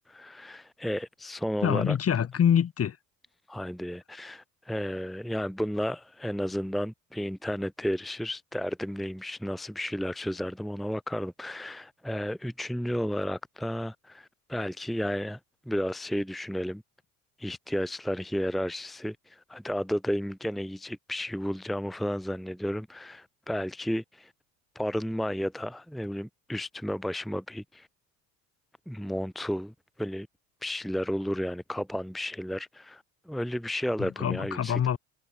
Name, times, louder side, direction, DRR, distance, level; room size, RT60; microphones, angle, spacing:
voice 1, 0.1-2.0 3.5-15.4 15.6-16.8 17.4-24.3 24.7-27.9 28.9-30.3 30.6-34.8, equal, ahead, 1.2 m, -32 dB
voice 2, 1.6-3.0 34.0-35.0, left 8 dB, 30° left, 2.0 m, -25 dB
figure-of-eight pair, 65°, 44 cm